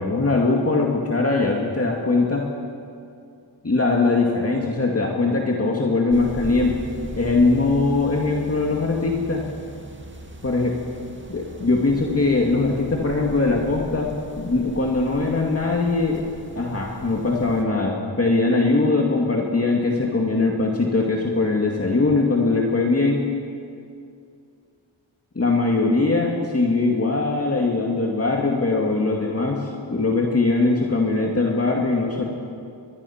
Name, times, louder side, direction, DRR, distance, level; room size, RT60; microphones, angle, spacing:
voice 1, 0.0-2.5 3.6-6.8 7.1-9.4 10.4-10.8 11.3-14.1 14.4-23.3 25.3-32.2, left 3 dB, 30° left, -1 dB, 2.3 m, -21 dB
sound 1, 6.1-17.6, right 1 dB, 25° right, 2.2 m, -39 dB
25.0 x 21.5 x 5.9 m, 2.4 s
wide cardioid pair, 110°, 46 cm